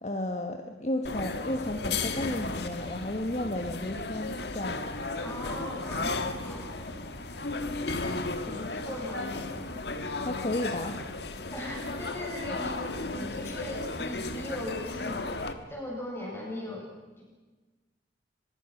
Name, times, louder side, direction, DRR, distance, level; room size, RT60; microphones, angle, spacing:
voice 1, 0.0-4.8 10.2-11.0, left 1 dB, 40° left, 4 dB, 1.4 m, -33 dB
sound 1, 1.0-15.5, left 3 dB, 65° left, 1.6 m, -34 dB
voice 2, 5.2-7.1 8.4-9.8 11.5-15.4 15.7-16.9 17.2-17.3, left 1 dB, 15° left, -2 dB, 7.3 m, -39 dB
25.0 x 21.5 x 6.1 m, 1.3 s
head